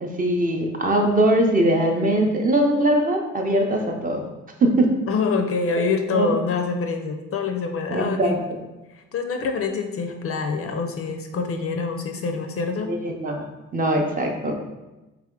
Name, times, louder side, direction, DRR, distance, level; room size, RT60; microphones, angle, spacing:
voice 1, 0.0-4.2 4.6-4.9 6.1-6.3 7.9-8.4 12.9-13.4 13.7-14.5, right 1 dB, 30° right, 2 dB, 0.6 m, -21 dB
voice 2, 5.1-8.3 8.9-12.9 14.0-14.2, left 4 dB, 50° left, 5 dB, 0.5 m, -26 dB
3.3 x 2.9 x 3.7 m, 1.1 s
cardioid pair, 90°, 30 cm